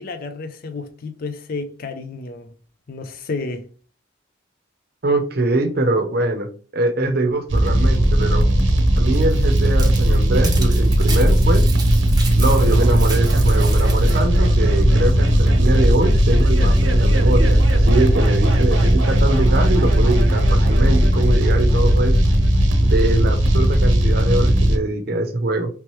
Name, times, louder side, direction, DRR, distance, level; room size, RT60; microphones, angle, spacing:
voice 1, 0.0-2.5 2.9-3.7, left 3 dB, 50° left, 0.4 m, -31 dB
voice 2, 5.0-6.5 6.7-8.5 9.0-11.7 12.4-22.2 22.8-25.7, right 2 dB, 55° right, 0.6 m, -23 dB
sound 1, 7.5-24.8, right 1 dB, 90° right, 0.7 m, -16 dB
sound 2, 9.1-14.2, right 4 dB, 20° right, 0.8 m, -34 dB
3.2 x 3.0 x 3.1 m
head